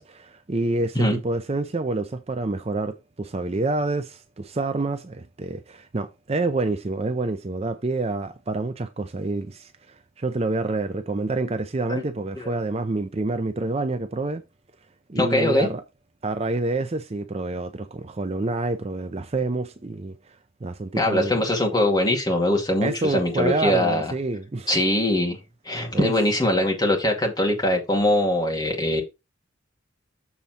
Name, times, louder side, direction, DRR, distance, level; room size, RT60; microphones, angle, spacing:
voice 1, 0.0-14.4 15.1-15.8 16.2-21.4 22.8-24.7 25.9-26.1, right 2 dB, 30° right, 0.5 m, -28 dB
voice 2, 15.2-15.7 21.0-24.1 24.7-25.4 25.7-29.0, left 1 dB, 20° left, 2.3 m, -22 dB
7.2 x 4.0 x 5.7 m
head